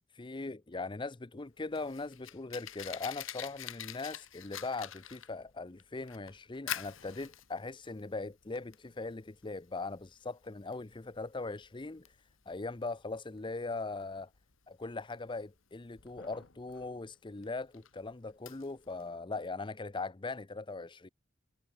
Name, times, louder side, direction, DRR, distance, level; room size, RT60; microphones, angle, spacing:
voice 1, 0.1-12.1 12.5-14.3 14.7-21.1, left 3 dB, 25° left, 0.6 m, -40 dB
Fire, 1.4-19.1, left 10 dB, 80° left, 2.0 m, -47 dB
head